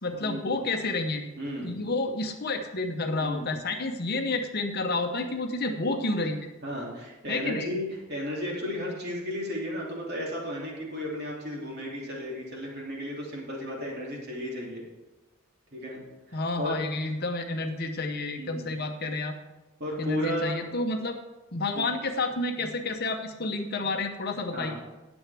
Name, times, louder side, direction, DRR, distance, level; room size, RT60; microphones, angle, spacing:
voice 1, 0.0-1.2 1.6-6.5 7.3-7.7 16.3-19.3 20.0-21.2 21.5-24.9, left 2 dB, 45° left, 5 dB, 0.9 m, -30 dB
voice 2, 1.4-1.7 3.2-3.5 6.6-14.8 15.7-16.0 16.3-16.8 18.4-18.7 19.8-20.6 21.7-21.8 24.5-24.7, equal, 50° right, -3 dB, 2.8 m, -34 dB
18.5 x 7.1 x 3.4 m, 1.1 s
head